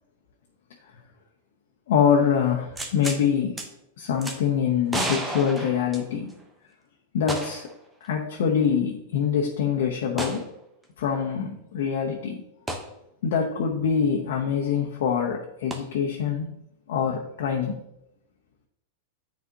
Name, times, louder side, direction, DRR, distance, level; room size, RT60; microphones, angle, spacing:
voice 1, 1.9-3.6 4.0-6.3 7.1-7.6 8.0-10.4 11.0-12.4 13.2-16.5 16.9-17.7, left 7 dB, 70° left, -1 dB, 0.8 m, -24 dB
sound 1, 2.8-3.2 3.6-3.7 4.2-4.4 4.9-6.4 7.3-7.7 8.0-8.1 10.2-10.4 12.7-12.9 15.7-15.8, right 1 dB, 10° right, 0.8 m, -31 dB
9.2 x 4.1 x 2.8 m, 0.82 s
hypercardioid pair, 125°, 0 cm